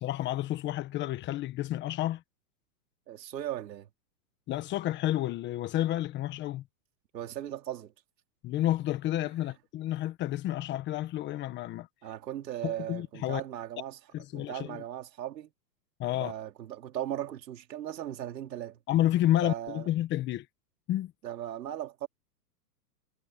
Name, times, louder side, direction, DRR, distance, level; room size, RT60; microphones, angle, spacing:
voice 1, 0.0-2.2 4.5-6.7 8.4-11.9 12.6-13.4 14.1-14.8 16.0-16.3 18.9-20.5 20.9-21.1, left 14 dB, 20° left, 1.2 m, -30 dB
voice 2, 3.1-3.9 7.1-7.9 12.0-14.0 14.3-15.5 16.2-18.8 19.4-19.9 21.2-22.1, right 11 dB, 80° right, 3.5 m, -37 dB
hypercardioid pair, 150°, 49 cm